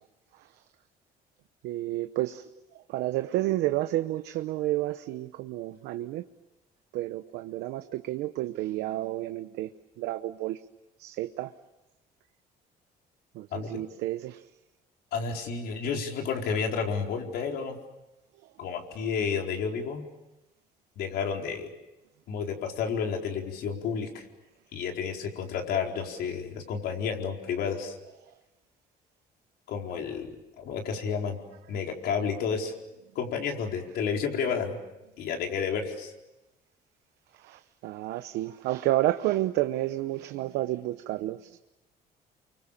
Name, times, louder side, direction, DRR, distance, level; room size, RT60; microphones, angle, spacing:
voice 1, 1.6-2.4 2.9-6.2 6.9-9.7 10.0-10.6 11.0-11.5 13.4-14.4 37.4-41.6, right 16 dB, 90° right, 9 dB, 0.9 m, -30 dB
voice 2, 15.1-17.8 18.6-20.0 21.0-21.7 22.3-24.2 24.7-28.0 29.7-31.4 31.7-32.7 33.1-34.8 35.2-36.1, left 6 dB, 75° left, 2 dB, 4.4 m, -31 dB
30.0 x 24.5 x 7.3 m, 0.97 s
cardioid pair, 110°, 17 cm